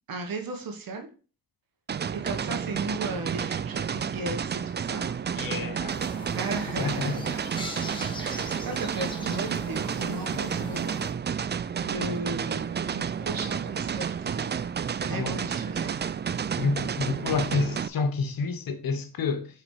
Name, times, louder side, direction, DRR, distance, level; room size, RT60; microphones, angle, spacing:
voice 1, 0.1-1.1 2.1-5.1 6.3-7.4 8.2-11.1 11.7-14.6 15.0-15.9, right 2 dB, 85° right, 1.5 m, -36 dB
sound 1, 1.9-17.9, right 7 dB, 30° right, 0.4 m, -31 dB
voice 2, 5.4-6.0 6.8-7.2 15.1-15.4 16.6-19.5, left 4 dB, 80° left, 1.1 m, -29 dB
sound 2, 5.9-11.1, left 1 dB, 15° left, 1.5 m, -41 dB
4.9 x 4.1 x 4.9 m
cardioid pair, 50°, 34 cm